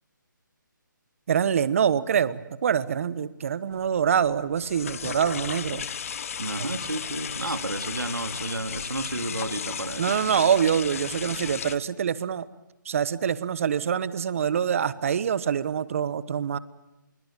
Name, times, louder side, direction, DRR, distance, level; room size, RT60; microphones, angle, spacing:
voice 1, 1.3-5.9 6.6-6.7 10.0-12.5 12.8-16.6, right 8 dB, 40° right, 18 dB, 1.2 m, -25 dB
sound 1, 3.7-11.8, left 7 dB, 45° left, 1.3 m, -35 dB
voice 2, 6.4-10.2, right 2 dB, 90° right, 9 dB, 2.6 m, -32 dB
26.0 x 23.0 x 9.0 m, 0.94 s
figure-of-eight pair, 150°, 11 cm